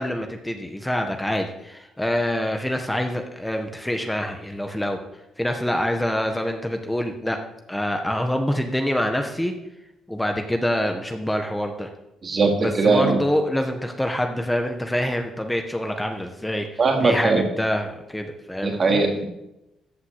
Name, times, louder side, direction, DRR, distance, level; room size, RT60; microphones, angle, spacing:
voice 1, 0.0-5.0 5.4-7.4 7.7-9.5 10.1-11.9 12.6-16.7 17.0-19.0, left 1 dB, 5° left, 4 dB, 1.4 m, -26 dB
voice 2, 12.2-13.2 16.8-17.5 18.6-19.3, right 3 dB, 45° right, 2 dB, 2.8 m, -20 dB
13.5 x 5.8 x 8.2 m, 0.90 s
cardioid pair, 90°, 0 cm